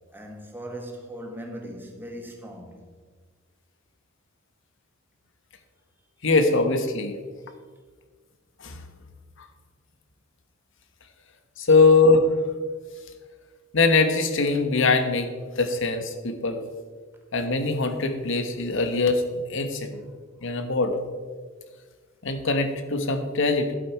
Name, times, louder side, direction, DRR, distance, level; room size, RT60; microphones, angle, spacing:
voice 1, 0.1-2.8 7.4-7.6 11.7-11.8 19.9-20.7, right 1 dB, 10° right, 1.5 m, -40 dB
voice 2, 6.2-7.2 8.6-8.8 11.6-12.3 13.7-16.6 17.3-19.2 19.5-20.0 20.4-20.9 22.2-23.7, left 3 dB, 65° left, 1.2 m, -22 dB
12.5 x 7.6 x 4.7 m
head